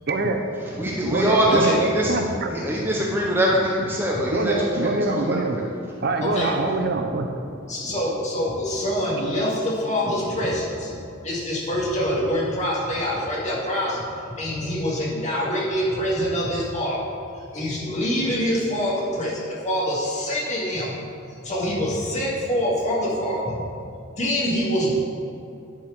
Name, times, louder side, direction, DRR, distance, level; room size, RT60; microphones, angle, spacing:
voice 1, 0.1-0.4 1.0-2.5 4.3-5.6 6.0-7.3, right 2 dB, 55° right, 5 dB, 0.6 m, -24 dB
voice 2, 0.7-2.2 2.5-4.5 4.8-5.4, equal, 10° right, -3 dB, 0.7 m, -23 dB
voice 3, 1.5-2.1 6.2-6.5 7.7-10.9 11.2-14.0 14.3-17.1 17.5-21.0 21.4-23.6 24.2-24.9, equal, 35° left, -6 dB, 2.3 m, -25 dB
10.5 x 4.8 x 5.2 m, 2.6 s
head